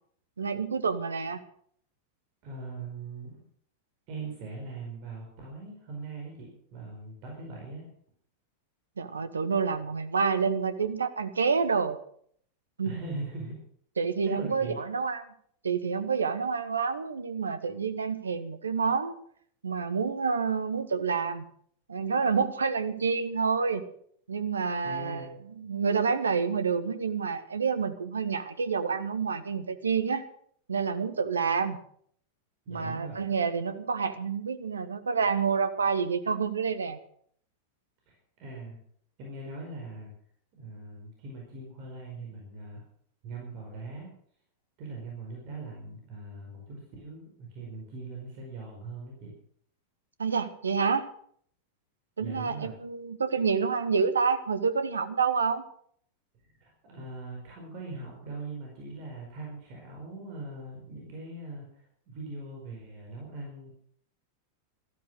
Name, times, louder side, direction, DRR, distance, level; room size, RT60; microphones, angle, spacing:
voice 1, 0.4-1.4 9.0-12.0 12.8-13.0 14.0-15.2 15.6-19.1 19.6-21.5 21.9-23.8 24.3-30.3 30.7-31.8 32.7-37.0 50.2-51.1 52.2-55.6, right 5 dB, 75° right, 12 dB, 1.1 m, -28 dB
voice 2, 2.4-3.4 4.1-7.9 12.8-13.6 14.2-14.8 24.8-25.4 32.6-33.2 38.1-38.8 39.2-40.1 40.5-42.8 43.2-44.1 44.8-49.3 52.2-52.7 56.3-63.7, right 3 dB, 45° right, -1 dB, 4.9 m, -41 dB
13.5 x 13.0 x 6.4 m, 0.62 s
figure-of-eight pair, 90°, 0 cm